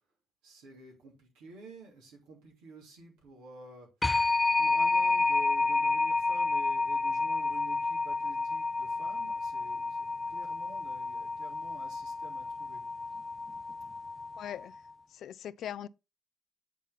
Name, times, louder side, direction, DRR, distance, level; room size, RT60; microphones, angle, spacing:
voice 1, 0.4-4.3 4.6-12.9, right 2 dB, 85° right, 3.0 m, -50 dB
sound 1, 4.0-14.6, left 3 dB, 15° left, 0.6 m, -30 dB
voice 2, 14.4-14.7 15.1-15.9, left 10 dB, 70° left, 0.3 m, -40 dB
8.4 x 4.1 x 3.7 m
supercardioid pair, 60°, 0 cm